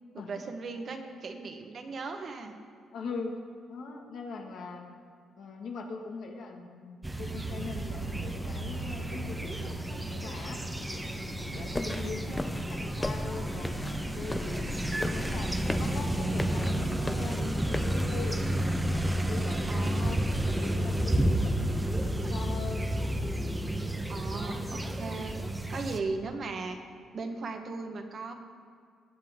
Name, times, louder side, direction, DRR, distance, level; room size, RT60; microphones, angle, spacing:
voice 1, 0.1-2.5 11.7-12.2 19.7-20.1 24.1-25.4 25.7-26.8 27.1-28.3, right 3 dB, 50° right, 5 dB, 1.2 m, -37 dB
voice 2, 2.9-3.3 3.7-4.9 5.4-10.6 11.5-13.8 14.1-14.7 15.0-18.4 19.1-21.8 22.2-22.9, left 4 dB, 70° left, 2 dB, 1.8 m, -41 dB
sound 1, 7.0-26.0, right 1 dB, 10° right, 0.9 m, -31 dB
sound 2, 8.0-19.5, left 4 dB, 50° left, 0.8 m, -48 dB
sound 3, 11.7-18.1, left 1 dB, 15° left, 0.5 m, -38 dB
20.0 x 7.5 x 3.7 m, 2.2 s
cardioid pair, 90°, 0 cm